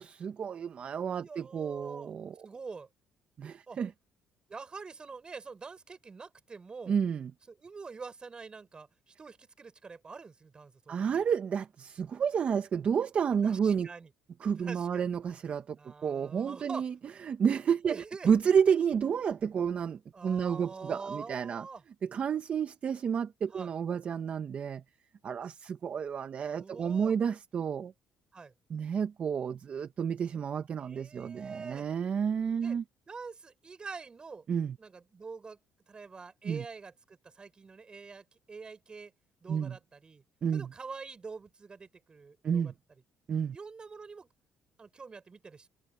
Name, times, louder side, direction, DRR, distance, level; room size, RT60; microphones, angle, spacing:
voice 1, 0.0-2.5 3.4-3.9 6.9-7.3 10.9-13.9 14.4-16.9 17.2-18.0 18.2-21.6 22.1-24.8 25.2-27.9 28.7-32.8 34.5-34.8 36.4-36.6 39.5-39.8 40.4-40.7 42.4-42.7 43.3-43.6, right 7 dB, 45° right, 1.4 m, -30 dB
voice 2, 1.2-2.1 2.4-2.9 3.7-3.8 4.5-7.0 7.5-11.2 13.4-14.1 14.6-15.0 15.8-16.9 17.8-18.3 20.1-21.8 23.5-23.7 26.5-27.1 28.3-28.5 30.8-31.9 32.6-32.8 33.1-34.5 34.8-35.6 35.9-39.1 39.4-40.2 40.5-42.7 43.5-44.3 44.8-45.7, right 4 dB, 30° right, 6.8 m, -45 dB
cardioid pair, 95°, 3 cm